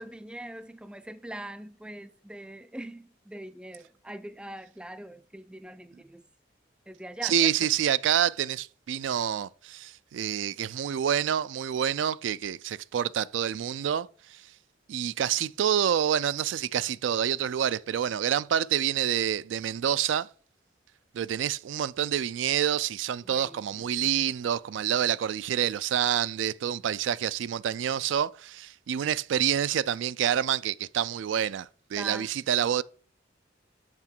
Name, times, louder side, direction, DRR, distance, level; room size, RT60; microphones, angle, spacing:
voice 1, 0.0-6.2 6.9-7.5 23.2-23.9 32.0-32.3, right 1 dB, 5° right, 0.3 m, -42 dB
voice 2, 7.2-14.4 14.9-20.3 21.1-32.8, right 9 dB, 85° right, 0.3 m, -27 dB
6.6 x 6.0 x 4.4 m
head